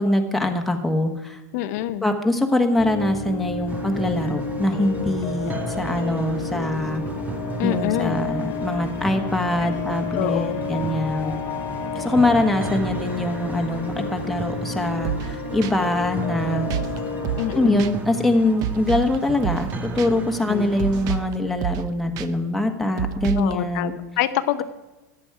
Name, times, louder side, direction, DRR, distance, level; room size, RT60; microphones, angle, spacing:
voice 1, 0.0-1.4 2.0-7.0 7.6-11.3 11.9-16.7 17.5-23.9, left 1 dB, ahead, 3 dB, 1.3 m, -23 dB
voice 2, 1.5-2.0 7.6-8.2 9.6-9.7 10.1-10.6 17.3-17.9 20.5-20.7 23.4-24.6, left 13 dB, 60° left, 10 dB, 0.7 m, -26 dB
sound 1, 2.8-17.8, left 4 dB, 35° left, 1.5 m, -31 dB
sound 2, 3.7-21.3, right 4 dB, 15° right, 1.2 m, -35 dB
sound 3, 15.0-15.3 15.6-15.7 16.7-17.0 17.2-17.5 17.8-17.9 18.6-19.2 19.4-19.7 20.0-20.1 20.8-21.3 21.6-21.9 22.2-22.3 23.0-23.5, right 11 dB, 40° right, 0.7 m, -28 dB
14.0 x 10.5 x 4.8 m, 1.1 s
supercardioid pair, 140°, 10 cm